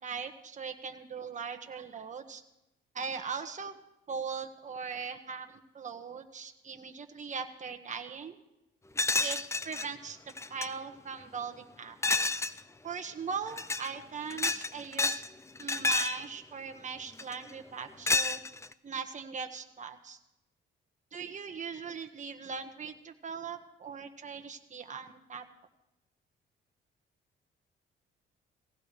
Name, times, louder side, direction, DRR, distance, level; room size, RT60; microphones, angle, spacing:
voice 1, 0.0-2.4 2.9-3.7 4.1-8.4 9.2-9.4 9.6-10.2 10.5-12.0 12.8-15.2 15.6-18.4 18.8-20.2 21.1-25.4, right 6 dB, 40° right, 5 dB, 1.4 m, -40 dB
sound 1, 9.0-9.9 10.3-10.7 12.0-12.6 13.5-13.9 14.3-15.3 15.6-16.2 17.2-17.5 18.1-18.7, left 3 dB, 15° left, 0.4 m, -29 dB
19.0 x 16.0 x 3.2 m, 0.88 s
cardioid pair, 90°, 20 cm